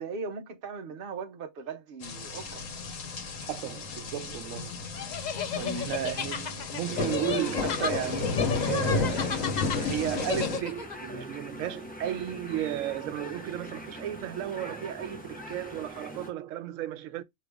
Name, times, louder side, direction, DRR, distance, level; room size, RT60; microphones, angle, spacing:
voice 1, 0.0-2.6 5.5-5.9, right 4 dB, 50° right, 0.8 m, -38 dB
sound 1, 2.0-10.6, left 4 dB, 80° left, 1.2 m, -32 dB
voice 2, 3.5-4.7 5.7-17.2, right 11 dB, 90° right, 1.0 m, -34 dB
sound 2, 4.9-11.0, left 7 dB, 60° left, 0.4 m, -34 dB
sound 3, 6.9-16.3, equal, 10° left, 0.6 m, -43 dB
4.9 x 2.9 x 3.4 m
omnidirectional pair, 1.3 m